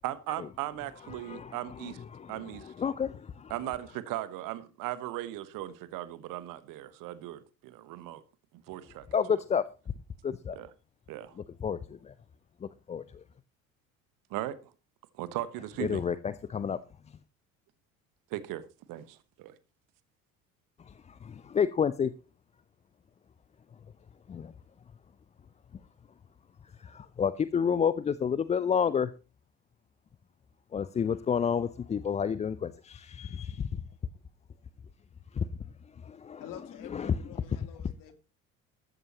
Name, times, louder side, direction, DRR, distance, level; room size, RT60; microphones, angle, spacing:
voice 1, 0.0-2.0 2.3-2.7 3.5-8.2 8.7-9.1 10.5-10.7 11.1-11.3 14.3-14.7 15.2-16.0 18.3-19.5, right 14 dB, 50° right, 1.3 m, -38 dB
voice 2, 1.1-3.5 9.1-9.6 10.2-10.6 11.4-12.1 12.6-13.2 15.8-16.8 17.1-17.2 20.8-22.1 24.3-24.5 26.8-29.1 30.7-33.8 35.3-35.5 36.0-36.4 36.9-37.1, left 7 dB, 15° left, 0.5 m, -30 dB
voice 3, 36.4-38.1, left 10 dB, 50° left, 2.5 m, -48 dB
13.5 x 13.0 x 3.0 m
figure-of-eight pair, 60°, 42 cm